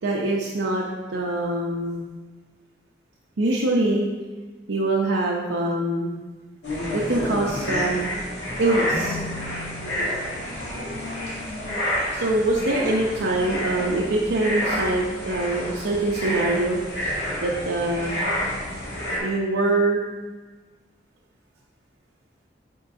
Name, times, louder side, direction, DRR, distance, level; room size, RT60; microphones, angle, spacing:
voice 1, 0.0-2.1 3.4-4.1 4.7-6.2 6.9-8.1 8.6-9.2 12.1-16.8 17.4-18.2 19.2-20.1, right 2 dB, 90° right, -3 dB, 0.6 m, -24 dB
sound 1, 6.6-19.2, equal, 80° left, 2.1 m, -29 dB
sound 2, 8.9-12.5, left 2 dB, 10° left, 1.3 m, -40 dB
9.4 x 4.5 x 2.6 m, 1.3 s
head